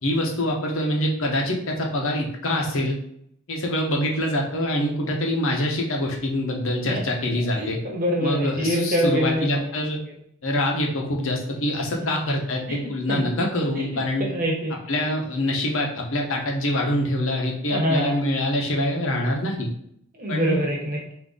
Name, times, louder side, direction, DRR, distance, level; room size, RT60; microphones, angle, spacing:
voice 1, 0.0-3.0 3.5-7.8 8.2-10.0 10.4-14.3 14.7-19.7 20.3-20.6, left 1 dB, 65° left, 1 dB, 0.9 m, -25 dB
voice 2, 7.6-9.5 12.7-12.8 13.1-13.2 13.7-13.9 14.3-14.7 17.7-18.2 20.2-21.1, equal, 40° right, -1 dB, 1.1 m, -24 dB
3.9 x 2.7 x 3.7 m, 0.69 s
head